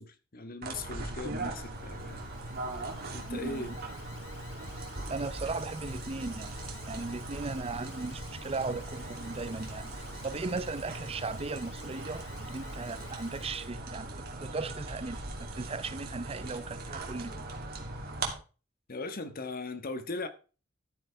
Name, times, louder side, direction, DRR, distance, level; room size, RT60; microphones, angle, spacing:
voice 1, 0.0-2.3 3.1-3.7 18.9-20.3, left 3 dB, 45° left, 1.3 m, -39 dB
sound 1, 0.6-18.3, right 2 dB, 50° right, 2.9 m, -40 dB
Alarm, 1.4-13.8, left 5 dB, 90° left, 3.2 m, -54 dB
voice 2, 3.3-3.7 5.1-6.5 6.9-17.5, right 3 dB, 30° right, 0.5 m, -37 dB
13.5 x 9.0 x 3.4 m
head